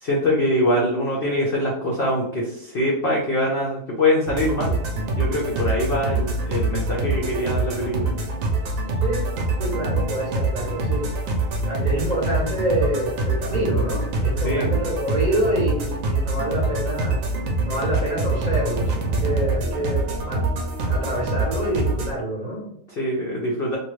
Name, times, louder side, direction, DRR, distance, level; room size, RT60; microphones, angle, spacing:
voice 1, 0.0-4.8 5.1-8.1 14.4-14.7 22.9-23.8, left 1 dB, 75° left, -3 dB, 0.5 m, -23 dB
sound 1, 4.3-22.1, right 2 dB, 65° right, 0.9 m, -25 dB
voice 2, 9.6-11.1 11.7-17.2 17.6-20.5 20.9-22.7, right 1 dB, 40° right, -6 dB, 0.6 m, -26 dB
2.9 x 2.2 x 3.1 m, 0.72 s
omnidirectional pair, 1.7 m